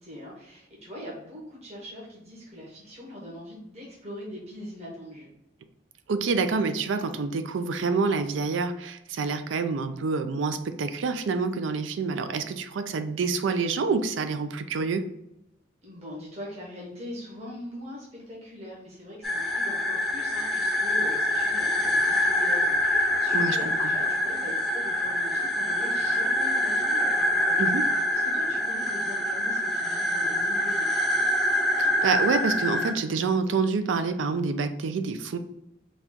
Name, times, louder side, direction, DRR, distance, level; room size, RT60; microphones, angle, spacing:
voice 1, 0.0-5.3 15.8-31.3, left 1 dB, 35° right, -5 dB, 1.1 m, -42 dB
voice 2, 6.1-15.0 23.3-23.9 27.6-27.9 31.8-35.4, right 4 dB, 85° right, 9 dB, 0.4 m, -27 dB
sound 1, 19.2-32.9, left 1 dB, ahead, 0.4 m, -25 dB
4.1 x 2.3 x 3.6 m, 0.84 s
head